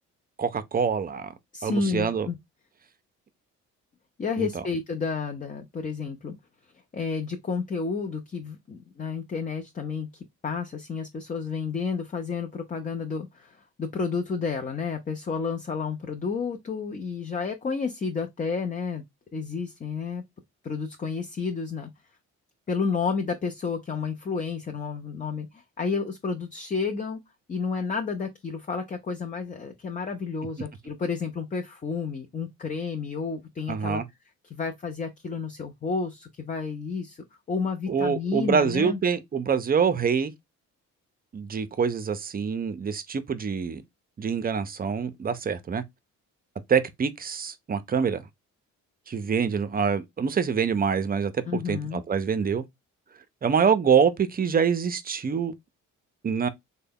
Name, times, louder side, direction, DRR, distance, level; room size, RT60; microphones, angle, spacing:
voice 1, 0.4-1.3 1.6-2.3 4.4-4.5 33.7-34.0 37.9-40.3 41.3-43.8 44.2-45.8 46.7-48.2 49.1-51.4 51.7-52.6 53.4-55.5 56.2-56.5, right 6 dB, 30° right, 0.5 m, -25 dB
voice 2, 1.5-2.4 4.2-6.4 6.9-19.0 19.3-20.2 20.6-21.9 22.7-27.2 27.5-34.0 34.4-39.0 51.4-52.0, left 5 dB, 25° left, 0.5 m, -31 dB
3.3 x 2.2 x 3.5 m
cardioid pair, 90°, 30 cm